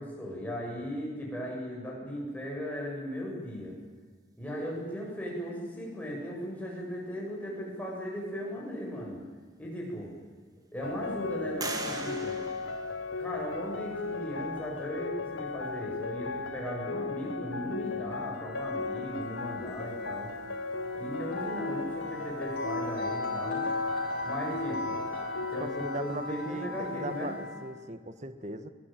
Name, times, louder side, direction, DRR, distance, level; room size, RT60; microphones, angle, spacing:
voice 1, 0.0-3.8 4.4-9.3 9.6-10.1 10.7-12.4 13.2-20.3 20.9-23.7 24.2-25.0 25.5-27.3, equal, 10° left, -3 dB, 7.5 m, -37 dB
sound 1, 9.3-9.4 10.0-10.7 11.6-13.5, right 3 dB, 20° right, 1.9 m, -40 dB
sound 2, 10.8-26.0, left 3 dB, 85° left, 1.2 m, -36 dB
sound 3, 18.3-27.7, left 2 dB, 50° left, 5.3 m, -38 dB
voice 2, 25.6-28.7, right 1 dB, 35° right, 10 dB, 1.5 m, -39 dB
23.0 x 20.0 x 9.3 m, 1.5 s
head